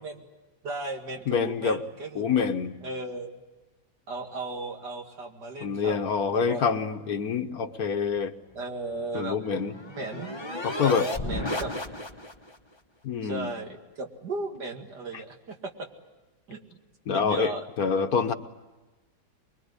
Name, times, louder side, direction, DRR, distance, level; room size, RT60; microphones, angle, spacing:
voice 1, 0.6-2.4 2.8-3.4 4.1-6.6 8.5-9.7 10.0-10.4 10.8-10.9 11.2-11.7 13.2-15.9 16.5-16.8 17.1-17.7, right 3 dB, 80° right, 3 dB, 2.8 m, -36 dB
voice 2, 1.3-1.8 2.1-2.8 5.6-8.3 9.1-9.7 10.6-11.1 13.0-13.5 17.1-18.3, left 6 dB, 65° left, 9 dB, 1.5 m, -26 dB
sound 1, 8.9-12.5, left 2 dB, 20° left, 1.0 m, -34 dB
24.0 x 22.0 x 9.7 m, 1.2 s
omnidirectional pair, 1.8 m